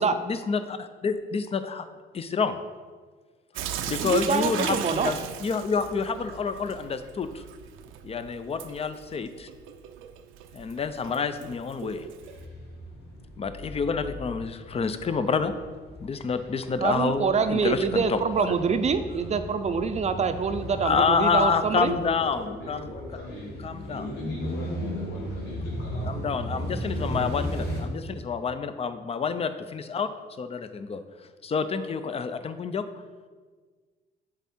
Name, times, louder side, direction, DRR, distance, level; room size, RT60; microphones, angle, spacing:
voice 1, 0.3-1.9 2.1-2.6 3.9-7.4 8.0-9.5 10.5-12.1 13.4-15.5 16.0-18.5 20.8-22.9 23.6-24.1 26.1-27.6 27.9-30.1 30.4-31.0 31.4-32.8, left 5 dB, 30° left, 11 dB, 0.5 m, -28 dB
Sink (filling or washing) / Drip, 3.5-12.4, right 9 dB, 90° right, 0.5 m, -38 dB
voice 2, 4.0-5.1 16.8-21.9, right 5 dB, 35° right, 9 dB, 0.5 m, -25 dB
sound 1, 12.2-27.8, equal, 55° left, 2.0 m, -36 dB
voice 3, 22.0-23.5 23.9-27.6, left 2 dB, 80° left, -5 dB, 1.3 m, -41 dB
7.8 x 3.7 x 4.3 m, 1.5 s
cardioid pair, 90°, 20 cm